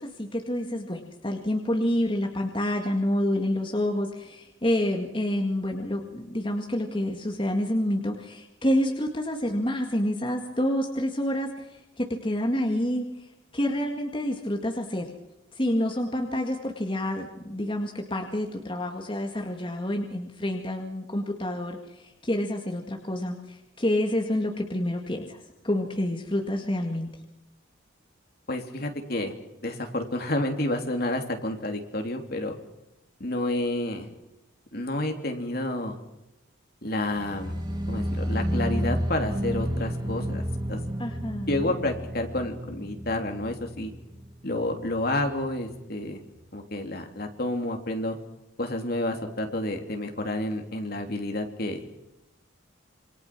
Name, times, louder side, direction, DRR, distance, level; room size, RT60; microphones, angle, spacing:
voice 1, 0.0-15.1 15.5-27.1 41.0-41.7, left 1 dB, 25° left, 2 dB, 2.0 m, -28 dB
voice 2, 28.5-29.3 29.6-32.6 33.2-34.1 34.7-36.0 36.8-37.5 37.9-40.8 41.5-43.9 44.4-46.2 46.5-48.2 48.6-51.8, left 1 dB, 50° left, 4 dB, 3.2 m, -30 dB
sound 1, 37.2-44.3 44.5-45.0 45.3-45.4, equal, 20° right, 2.2 m, -31 dB
27.5 x 24.5 x 6.1 m, 0.93 s
head